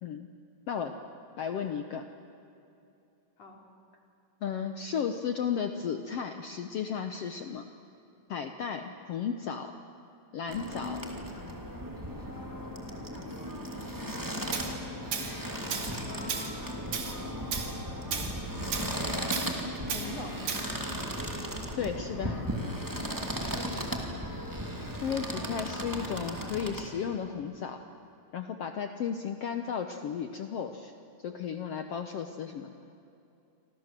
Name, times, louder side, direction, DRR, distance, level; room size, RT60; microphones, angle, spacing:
voice 1, 1.4-2.0 4.4-7.6 8.3-9.7 10.3-11.0 21.8-22.5 25.0-27.8 28.3-30.9 31.2-32.7, left 7 dB, 65° left, 6 dB, 1.6 m, -34 dB
sound 1, 10.5-26.8, equal, 5° right, 2.0 m, -36 dB
Tools, 14.5-14.7 15.1-15.3 15.7-16.0 16.3-16.5 16.9-17.1 17.5-17.7 18.1-18.3 18.7-18.9 19.3-19.5 19.9-20.1 20.5-20.7, right 7 dB, 85° right, 4.1 m, -33 dB
voice 2, 15.1-17.2 19.8-20.6 23.2-24.1, left 3 dB, 50° left, 1 dB, 4.2 m, -47 dB
29.0 x 25.5 x 7.5 m, 2.7 s
omnidirectional pair, 3.9 m